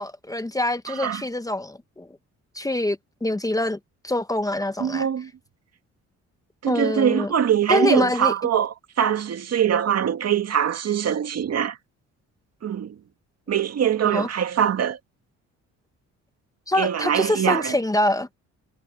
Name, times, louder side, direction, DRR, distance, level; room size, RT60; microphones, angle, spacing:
voice 1, 0.0-2.1 2.5-5.1 6.7-7.3 7.7-8.3 14.0-14.3 16.7-18.3, left 1 dB, 10° left, 1.1 m, -25 dB
voice 2, 4.8-5.3 6.6-11.8 12.6-13.0 13.5-15.0 16.8-17.8, right 9 dB, 55° right, 2.2 m, -23 dB
cardioid pair, 90°, 30 cm